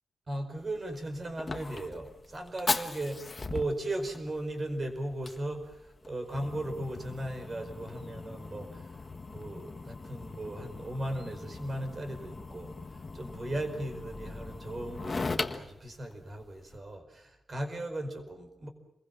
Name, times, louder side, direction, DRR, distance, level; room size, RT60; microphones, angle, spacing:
voice 1, 0.3-8.9 9.3-18.7, right 1 dB, 30° right, 5 dB, 4.9 m, -37 dB
Fire, 0.6-16.8, left 3 dB, 25° left, 1.5 m, -39 dB
28.5 x 22.0 x 7.2 m, 0.85 s
wide cardioid pair, 170°, 0 cm